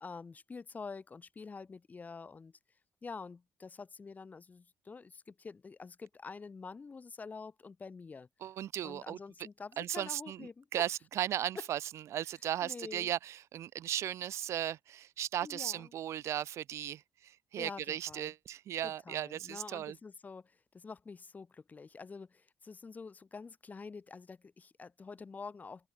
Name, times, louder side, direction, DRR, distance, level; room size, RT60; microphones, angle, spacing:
voice 1, 0.0-2.5 3.0-8.3 8.8-10.7 12.6-13.1 15.4-15.9 17.6-18.3 18.8-25.9, left 4 dB, 35° left, 2.3 m, -47 dB
voice 2, 8.4-9.2 9.8-11.8 12.1-20.0, right 11 dB, 70° right, 1.1 m, -36 dB
open air
cardioid pair, 80°, 5 cm